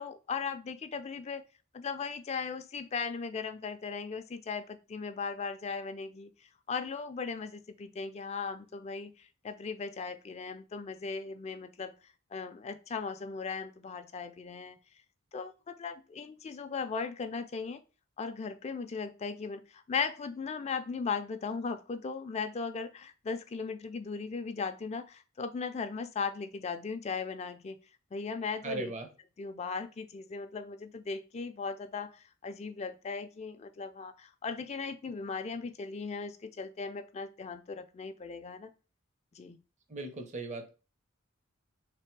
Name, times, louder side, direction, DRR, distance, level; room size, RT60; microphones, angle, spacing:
voice 1, 0.0-1.4 1.7-6.3 6.7-11.9 12.3-14.8 15.3-17.8 18.2-27.8 28.1-28.9 29.4-38.7 39.3-39.6, left 5 dB, 30° left, 9 dB, 0.3 m, -37 dB
voice 2, 28.6-29.1 39.9-40.7, right 3 dB, 35° right, 5 dB, 0.6 m, -37 dB
3.5 x 3.3 x 4.5 m, 0.34 s
head